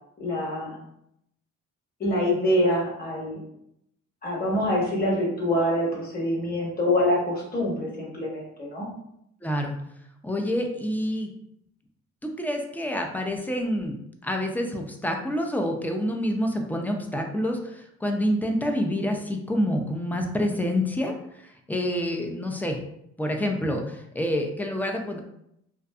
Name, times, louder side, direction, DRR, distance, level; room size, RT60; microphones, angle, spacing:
voice 1, 0.2-0.7 2.0-3.4 4.2-8.9, left 1 dB, 30° left, -4 dB, 1.0 m, -25 dB
voice 2, 9.4-9.7 10.2-11.3 12.2-22.8 23.2-25.2, equal, 5° left, 3 dB, 0.3 m, -27 dB
2.5 x 2.4 x 2.3 m, 0.77 s
cardioid pair, 90°, 30 cm